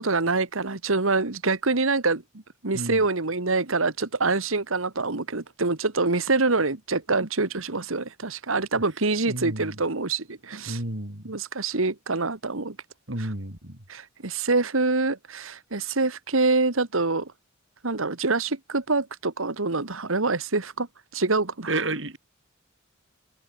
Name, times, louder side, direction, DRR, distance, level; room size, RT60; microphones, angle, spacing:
voice 1, 0.0-2.2 2.6-10.8 11.2-12.7 13.2-13.3 13.9-17.3 17.8-20.9 21.1-21.8, right 3 dB, 80° right, 1.8 m, -25 dB
voice 2, 9.3-9.8 10.7-11.2 13.1-13.8 21.7-22.2, right 2 dB, 60° right, 4.0 m, -31 dB
head